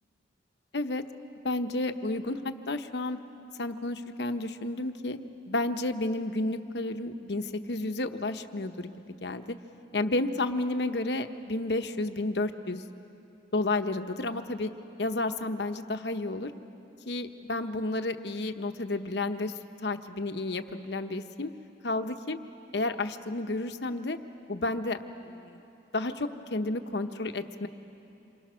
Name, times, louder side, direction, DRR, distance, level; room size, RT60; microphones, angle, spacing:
voice 1, 1.4-3.2 3.6-5.2 5.5-8.9 9.2-9.6 9.9-12.8 13.5-14.7 15.0-16.5 17.1-19.5 19.8-21.5 21.8-22.4 22.7-24.2 24.5-25.0 25.3-25.6 25.9-27.7, left 2 dB, 70° left, 8 dB, 1.0 m, -31 dB
27.5 x 25.5 x 6.3 m, 2.9 s
head